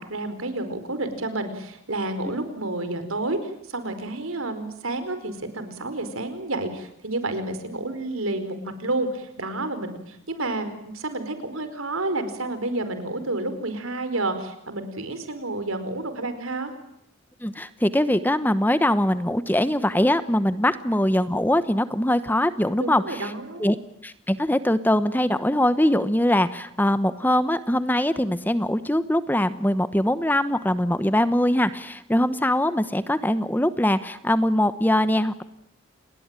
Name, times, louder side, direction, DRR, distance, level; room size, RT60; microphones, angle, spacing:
voice 1, 0.0-16.7 22.8-23.7, right 2 dB, 80° right, 10 dB, 4.7 m, -30 dB
voice 2, 17.4-23.3 23.6-23.8 24.0-35.4, left 1 dB, 10° left, 13 dB, 0.9 m, -22 dB
29.5 x 20.5 x 9.0 m, 0.79 s
head